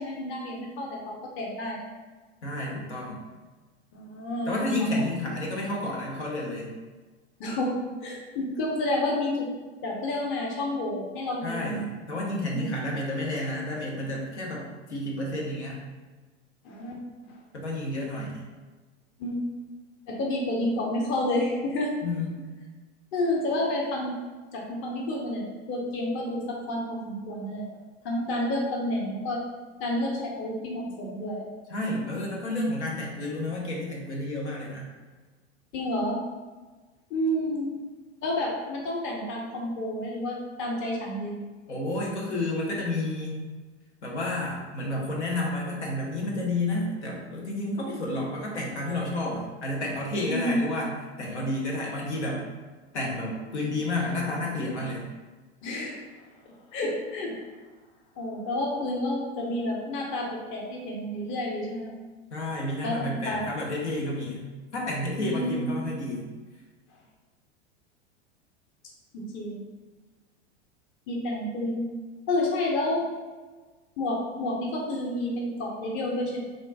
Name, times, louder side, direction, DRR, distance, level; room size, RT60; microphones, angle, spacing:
voice 1, 0.0-1.8 3.9-4.7 7.4-9.5 9.8-11.8 12.5-12.7 16.6-17.0 17.3-17.4 19.2-19.5 20.1-21.9 23.1-24.1 24.5-27.7 28.0-29.4 29.8-31.5 35.7-36.2 37.1-37.7 38.2-41.3 50.3-50.6 55.6-56.0 56.7-57.3 58.2-61.9 62.8-63.4 65.2-65.7 69.1-69.6 71.1-71.9 72.3-73.0 74.0-76.4, left 1 dB, 35° left, -1 dB, 0.9 m, -30 dB
voice 2, 2.4-3.2 4.5-6.7 11.4-15.8 17.5-18.4 22.0-22.3 31.7-34.9 41.7-43.4 44.0-50.9 51.2-52.4 52.9-55.0 62.3-64.4 64.7-66.3, left 1 dB, 80° left, -3 dB, 1.1 m, -30 dB
3.6 x 2.5 x 4.0 m, 1.3 s
hypercardioid pair, 95°, 34 cm